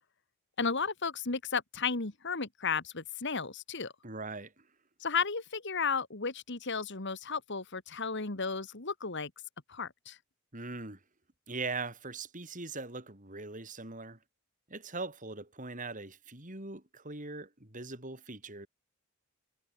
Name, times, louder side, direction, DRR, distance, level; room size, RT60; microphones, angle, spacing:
voice 1, 0.6-3.9 5.0-9.3 9.7-10.2, left 5 dB, 55° left, 1.9 m, -34 dB
voice 2, 4.0-4.6 10.5-11.0 11.5-14.2 14.7-18.7, right 3 dB, 40° right, 5.0 m, -41 dB
head